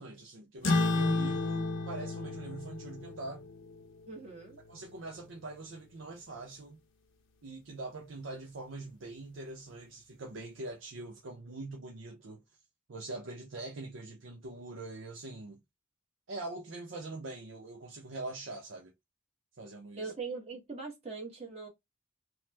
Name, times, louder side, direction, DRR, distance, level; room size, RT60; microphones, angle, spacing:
voice 1, 0.0-3.4 4.7-6.8 7.4-12.4 12.9-15.6 16.3-18.9 19.6-20.1, right 2 dB, 80° right, 0.6 m, -43 dB
sound 1, 0.6-5.5, left 2 dB, 85° left, 0.7 m, -33 dB
voice 2, 4.1-4.6 20.0-21.7, right 4 dB, 30° right, 0.9 m, -41 dB
3.0 x 2.0 x 3.2 m
head